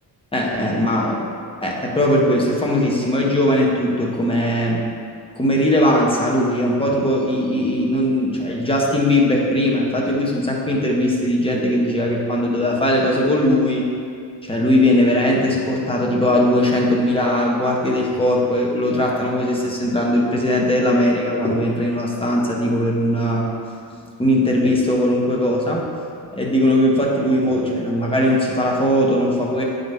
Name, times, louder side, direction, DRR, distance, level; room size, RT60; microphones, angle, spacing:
voice 1, 0.3-1.2 1.6-4.9 5.4-13.8 14.4-23.5 23.9-25.9 26.3-29.6, left 1 dB, 15° left, -2 dB, 1.2 m, -19 dB
9.5 x 4.0 x 3.5 m, 2.3 s
cardioid pair, 105°, 39 cm